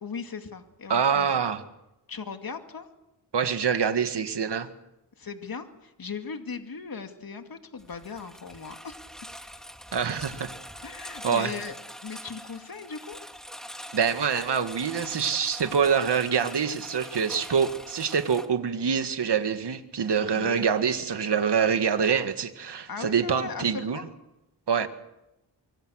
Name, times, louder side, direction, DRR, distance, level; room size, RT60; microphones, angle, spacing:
voice 1, 0.0-1.4 2.1-2.9 5.2-9.0 10.8-11.8 12.0-13.2 20.3-20.6 22.9-24.1 24.8-24.9, left 5 dB, 55° left, 6 dB, 2.4 m, -38 dB
voice 2, 0.9-1.6 3.3-4.7 9.9-10.5 11.2-11.5 13.9-24.0 24.7-24.9, right 6 dB, 70° right, 8 dB, 2.0 m, -25 dB
Engine, 7.8-18.5, equal, ahead, 2.8 m, -43 dB
24.5 x 24.5 x 6.5 m, 0.91 s
cardioid pair, 60°, 42 cm